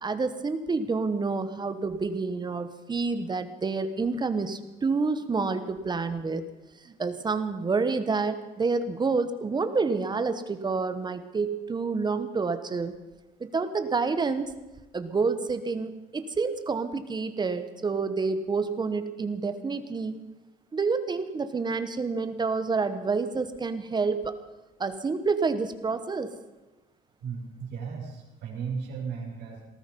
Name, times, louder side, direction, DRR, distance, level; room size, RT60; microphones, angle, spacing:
voice 1, 0.0-6.4 6.8-12.9 13.4-14.5 14.9-20.2 20.7-24.3 24.8-26.4, right 4 dB, 25° right, 10 dB, 1.2 m, -28 dB
voice 2, 27.2-29.7, right 6 dB, 80° right, -1 dB, 5.6 m, -35 dB
19.0 x 13.5 x 5.4 m, 1.1 s
cardioid pair, 110°, 17 cm